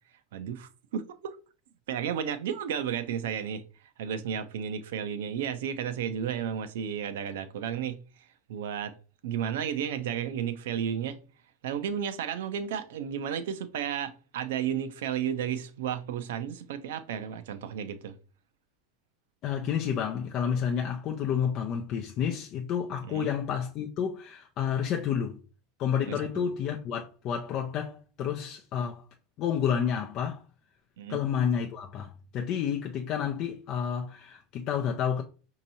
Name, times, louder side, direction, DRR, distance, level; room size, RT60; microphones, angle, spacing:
voice 1, 0.3-1.1 1.9-3.6 4.0-8.9 9.2-11.2 11.6-18.1 23.1-23.3 26.1-26.5 31.0-31.2, right 8 dB, 75° right, 0.5 m, -33 dB
voice 2, 19.4-25.4 25.8-29.0 29.4-30.4 31.1-35.2, left 8 dB, 50° left, 0.5 m, -30 dB
5.2 x 2.8 x 2.7 m
hypercardioid pair, 90°, 0 cm